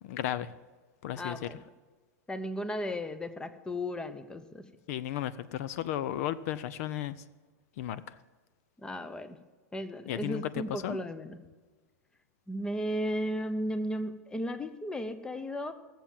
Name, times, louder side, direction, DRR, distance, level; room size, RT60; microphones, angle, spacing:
voice 1, 0.0-0.5 1.0-1.5 4.9-7.2 7.8-8.2 10.1-11.0, left 12 dB, 60° left, 16 dB, 0.6 m, -34 dB
voice 2, 1.2-1.6 2.3-4.6 8.8-9.4 9.7-11.4 12.5-15.7, equal, 10° left, 11 dB, 0.8 m, -35 dB
16.0 x 7.4 x 7.3 m, 1.3 s
supercardioid pair, 130°, 9 cm